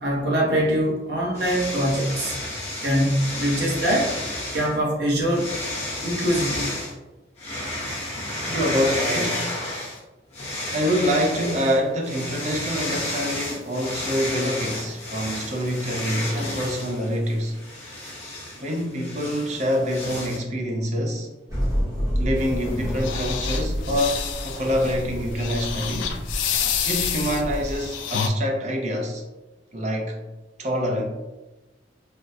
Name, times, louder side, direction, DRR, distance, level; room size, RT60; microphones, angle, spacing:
voice 1, 0.0-2.4 2.8-4.1 4.5-5.5 6.0-6.8, equal, 60° right, 0.9 m, -23 dB
sound 1, 1.3-4.7 5.3-6.9 7.4-10.0 10.3-20.4, left 1 dB, 35° left, 0.7 m, -32 dB
voice 2, 8.4-9.5 10.7-17.6 18.6-21.3 22.2-26.2 26.9-29.2 29.7-30.2 30.6-31.0, equal, 40° right, 0.5 m, -26 dB
sound 2, 21.5-27.8, equal, 20° right, 0.9 m, -29 dB
sound 3, 22.4-28.3, left 8 dB, 90° left, 0.3 m, -29 dB
3.4 x 2.1 x 2.6 m
head